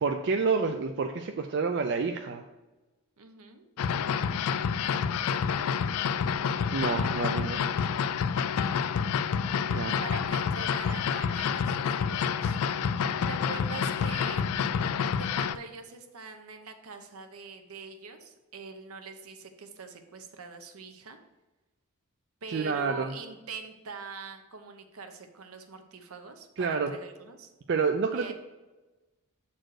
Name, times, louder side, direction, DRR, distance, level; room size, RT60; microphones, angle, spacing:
voice 1, 0.0-2.4 6.7-7.6 9.7-10.0 22.5-23.1 26.6-26.9 27.7-28.3, right 5 dB, 50° right, 5 dB, 0.4 m, -28 dB
voice 2, 3.2-3.6 8.5-8.9 10.0-12.6 13.0-14.5 15.2-21.2 22.4-27.5 28.1-28.3, right 4 dB, 70° right, 7 dB, 0.9 m, -44 dB
sound 1, 3.8-15.6, left 7 dB, 75° left, 0.3 m, -28 dB
7.6 x 4.3 x 4.8 m, 1.1 s
head